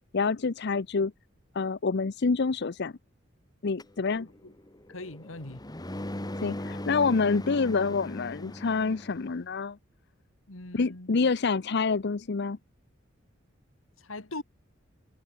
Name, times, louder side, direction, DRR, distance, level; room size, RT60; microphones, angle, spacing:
voice 1, 0.1-1.1 1.5-2.9 3.6-4.3 6.4-9.8 10.7-12.6, left 4 dB, 55° left, 0.6 m, -27 dB
sound 1, 3.8-9.4, left 1 dB, 20° left, 1.6 m, -39 dB
voice 2, 4.1-4.5 4.9-5.6 10.5-11.1 14.0-14.4, left 2 dB, 85° left, 2.7 m, -41 dB
head